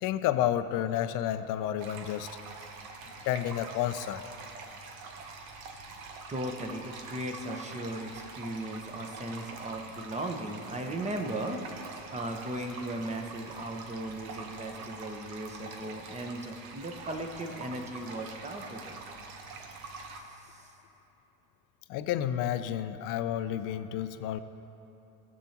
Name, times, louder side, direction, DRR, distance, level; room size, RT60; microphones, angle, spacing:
voice 1, 0.0-2.3 3.2-4.2 21.9-24.4, left 11 dB, 50° left, 11 dB, 0.6 m, -30 dB
sound 1, 1.8-20.2, right 4 dB, 70° right, 1.2 m, -45 dB
voice 2, 6.3-11.6 12.1-19.0 20.0-20.7, right 1 dB, 15° right, 4 dB, 1.1 m, -37 dB
17.5 x 7.3 x 3.0 m, 3.0 s
hypercardioid pair, 100°, 43 cm